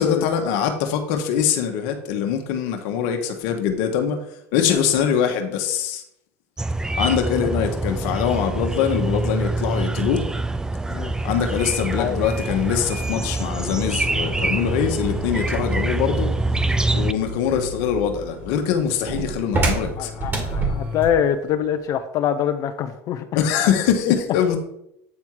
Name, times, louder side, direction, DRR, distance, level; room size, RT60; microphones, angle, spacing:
voice 1, 0.0-4.2 4.5-6.0 7.0-10.2 11.2-16.3 16.9-20.1 23.3-24.6, left 8 dB, 70° left, 5 dB, 1.1 m, -23 dB
sound 1, 6.6-17.1, right 2 dB, 10° right, 0.3 m, -25 dB
sound 2, 11.3-21.3, right 1 dB, 30° right, 2.1 m, -30 dB
voice 2, 20.0-23.3 24.1-24.2, left 9 dB, 50° left, 9 dB, 0.6 m, -24 dB
8.5 x 3.5 x 4.6 m, 0.78 s
hypercardioid pair, 90°, 7 cm